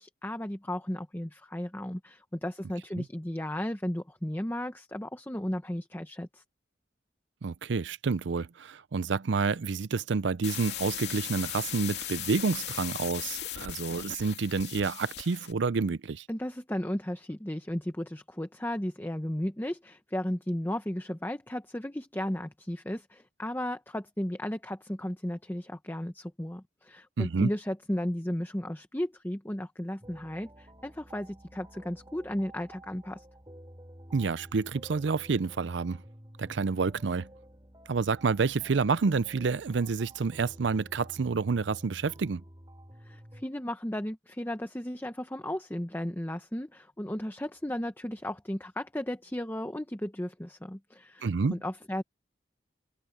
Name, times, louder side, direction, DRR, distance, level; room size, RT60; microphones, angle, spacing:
voice 1, 0.0-6.4 16.3-33.2 43.0-52.0, left 1 dB, 10° left, 0.9 m, -35 dB
voice 2, 7.4-16.3 27.2-27.5 34.1-36.0 36.4-37.3 37.9-42.4 51.2-51.6, right 4 dB, 75° right, 0.5 m, -29 dB
sound 1, 10.4-15.6, left 11 dB, 65° left, 3.0 m, -38 dB
sound 2, 30.0-43.4, equal, 20° right, 4.3 m, -51 dB
open air
head